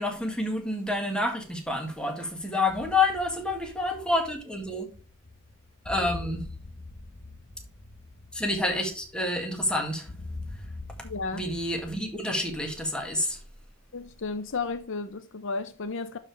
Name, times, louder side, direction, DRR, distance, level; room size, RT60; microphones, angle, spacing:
voice 1, 0.0-4.9 5.9-6.5 8.3-10.1 11.3-13.4, left 2 dB, 5° left, 1.9 m, -28 dB
sound 1, 2.7-12.1, left 2 dB, 50° left, 1.2 m, -43 dB
voice 2, 11.0-11.4 13.9-16.2, left 4 dB, 65° left, 0.7 m, -33 dB
11.5 x 4.9 x 3.4 m
head